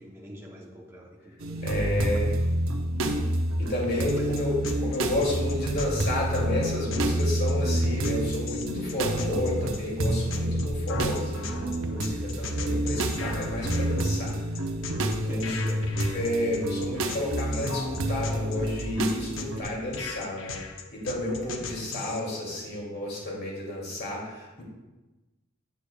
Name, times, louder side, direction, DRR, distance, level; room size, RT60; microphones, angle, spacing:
voice 1, 0.0-2.2 4.1-4.4 15.2-15.9, right 1 dB, 10° right, -1 dB, 0.7 m, -42 dB
sound 1, 1.4-19.6, right 1 dB, 90° right, 0.7 m, -28 dB
voice 2, 1.6-2.3 3.6-14.4 15.2-15.6 16.1-24.6, left 1 dB, 50° left, -3 dB, 2.5 m, -31 dB
sound 2, 4.1-22.2, left 4 dB, 75° left, 0.6 m, -38 dB
8.3 x 8.3 x 2.3 m, 1.1 s
head